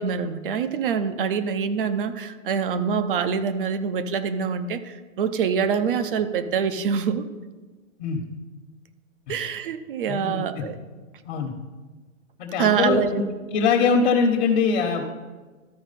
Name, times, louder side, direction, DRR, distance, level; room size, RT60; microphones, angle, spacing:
voice 1, 0.0-7.2 9.3-10.8 12.6-13.2, right 6 dB, 45° right, 10 dB, 0.7 m, -25 dB
voice 2, 10.1-10.6 11.2-11.5 12.4-13.2 13.5-15.1, left 5 dB, 50° left, 2 dB, 1.3 m, -22 dB
13.5 x 4.6 x 4.2 m, 1.3 s
hypercardioid pair, 150°, 39 cm